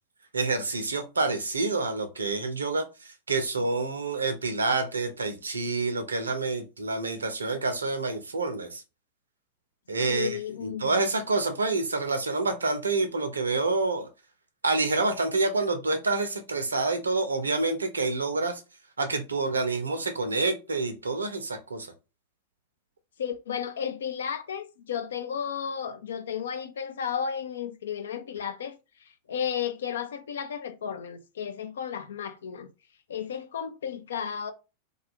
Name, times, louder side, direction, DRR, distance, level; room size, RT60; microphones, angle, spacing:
voice 1, 0.3-8.8 9.9-14.1 14.6-18.6 19.0-21.9, right 3 dB, 75° right, 0.6 m, -28 dB
voice 2, 10.1-11.0 23.2-32.7 33.1-34.5, left 8 dB, 65° left, 0.4 m, -33 dB
2.4 x 2.3 x 2.9 m
figure-of-eight pair, 90°, 0 cm